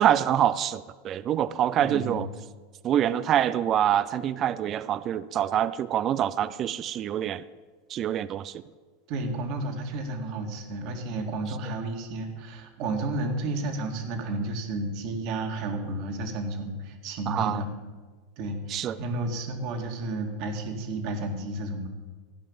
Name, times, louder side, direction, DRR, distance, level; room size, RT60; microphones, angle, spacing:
voice 1, 0.0-2.3 2.8-7.4 7.9-8.5 17.3-17.6 18.7-19.0, right 10 dB, 40° right, 16 dB, 0.5 m, -25 dB
voice 2, 1.8-2.2 9.1-17.7 18.4-21.9, right 2 dB, 55° right, 4 dB, 2.1 m, -32 dB
15.0 x 5.8 x 8.7 m, 1.4 s
supercardioid pair, 115°, 0 cm